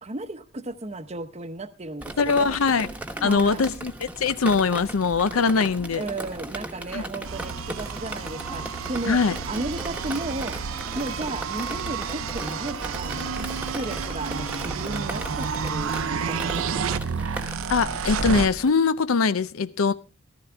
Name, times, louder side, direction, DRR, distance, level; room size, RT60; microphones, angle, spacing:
voice 1, 0.0-2.6 3.2-3.6 6.0-9.2 9.5-10.6 10.9-16.9, right 2 dB, 30° right, 0.8 m, -34 dB
Drip, 2.0-18.7, right 1 dB, 5° right, 1.1 m, -37 dB
voice 2, 2.2-2.9 3.2-6.0 6.9-7.0 9.1-9.4 17.7-19.9, left 5 dB, 80° left, 0.6 m, -22 dB
sound 1, 7.2-18.5, right 6 dB, 80° right, 0.6 m, -31 dB
14.5 x 14.0 x 3.4 m
head